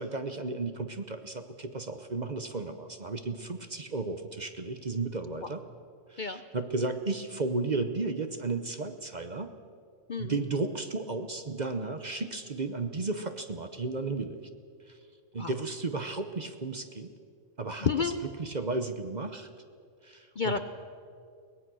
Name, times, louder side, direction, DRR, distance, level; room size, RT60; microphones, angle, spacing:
voice 1, 0.0-5.6 6.1-9.5 10.2-14.5 14.9-15.0 15.3-17.1 17.6-17.9 18.4-19.5 20.0-20.6, right 3 dB, 35° right, 8 dB, 0.9 m, -34 dB
voice 2, 10.1-10.4 15.4-15.5 17.8-18.2 20.4-20.6, left 5 dB, 45° left, 9 dB, 0.7 m, -30 dB
23.0 x 18.5 x 6.3 m, 2.3 s
omnidirectional pair, 1.4 m